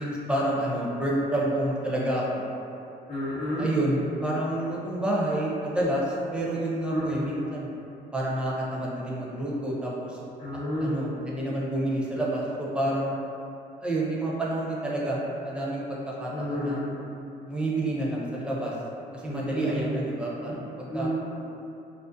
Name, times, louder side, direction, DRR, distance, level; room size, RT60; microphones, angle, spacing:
voice 1, 0.0-2.5 3.6-7.7 8.1-10.2 10.8-13.1 13.8-16.8 17.5-18.7 19.1-21.1, right 1 dB, 5° right, -5 dB, 0.5 m, -29 dB
voice 2, 3.1-3.7 6.9-7.3 10.4-11.0 16.3-16.9 19.2-19.9 20.5-20.6 20.9-21.1, left 1 dB, 35° left, -12 dB, 0.7 m, -31 dB
2.4 x 2.0 x 2.5 m, 2.8 s
supercardioid pair, 85°, 19 cm